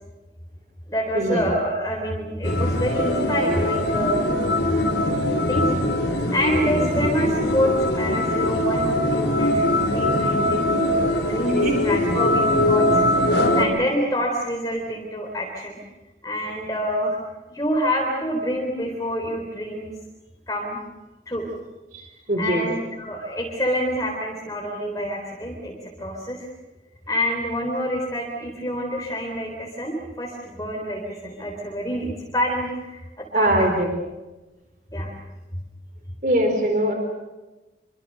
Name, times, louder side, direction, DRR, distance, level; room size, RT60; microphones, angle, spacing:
voice 1, 0.9-4.2 4.6-4.8 5.5-5.7 6.3-15.8 16.2-17.2 17.5-19.9 20.5-20.8 21.3-21.5 22.4-26.5 27.1-33.7 34.9-35.1, equal, 20° left, -1 dB, 4.0 m, -27 dB
sound 1, 2.4-13.7, left 1 dB, 90° left, 5.5 m, -22 dB
voice 2, 22.3-22.6 33.3-33.9 36.2-36.9, right 1 dB, 45° right, 4 dB, 4.2 m, -21 dB
27.5 x 25.0 x 6.7 m, 1.1 s
head